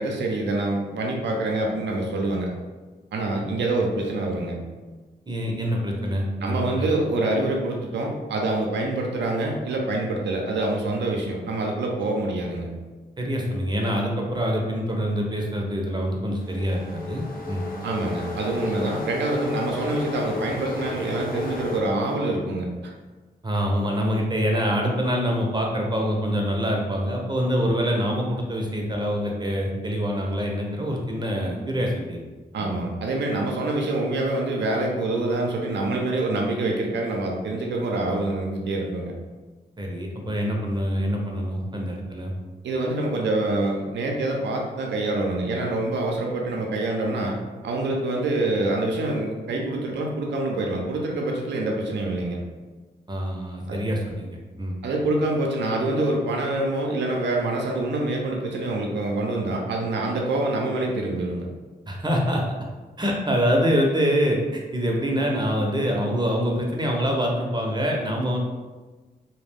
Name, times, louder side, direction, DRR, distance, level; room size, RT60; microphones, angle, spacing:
voice 1, 0.0-2.5 3.1-4.6 6.4-12.7 17.8-22.9 32.5-39.1 42.6-47.4 47.6-52.4 53.7-53.8 54.8-61.5, right 2 dB, 80° right, 0 dB, 0.4 m, -26 dB
voice 2, 5.3-6.9 13.2-17.6 23.4-32.2 32.6-32.7 39.8-42.3 53.1-54.8 61.9-62.4 63.0-68.4, equal, 25° right, 0 dB, 0.6 m, -25 dB
sound 1, 16.4-21.8, left 3 dB, 55° left, 0.6 m, -33 dB
2.3 x 2.1 x 3.4 m, 1.3 s
cardioid pair, 45°, 18 cm